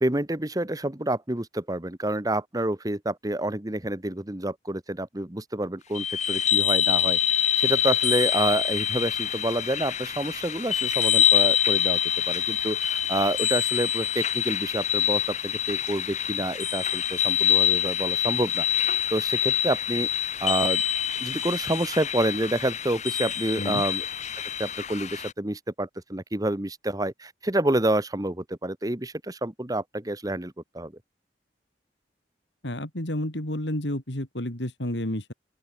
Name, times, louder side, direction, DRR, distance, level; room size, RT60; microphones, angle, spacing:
voice 1, 0.0-12.0 12.3-20.1 20.4-20.8 21.2-24.0 24.6-30.9, right 1 dB, 20° right, 1.4 m, -28 dB
sound 1, 5.9-25.3, left 9 dB, 40° left, 1.2 m, -25 dB
voice 2, 32.6-35.3, left 1 dB, 80° left, 4.0 m, -30 dB
open air
head